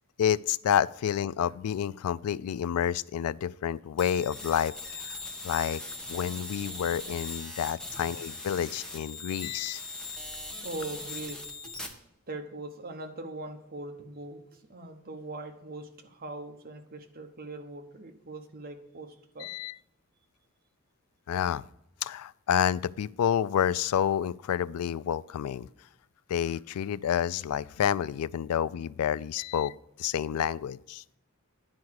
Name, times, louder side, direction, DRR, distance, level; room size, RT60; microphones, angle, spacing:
voice 1, 0.2-5.2 5.4-5.8 6.1-9.8 19.4-19.8 21.3-21.6 22.0-25.7 26.3-31.0, left 9 dB, 90° left, 18 dB, 0.3 m, -29 dB
sound 1, 4.0-11.9, left 2 dB, 5° left, 1.2 m, -40 dB
voice 2, 10.6-11.7 12.3-19.5, right 2 dB, 45° right, 6 dB, 1.0 m, -41 dB
10.5 x 4.8 x 6.3 m, 0.79 s
head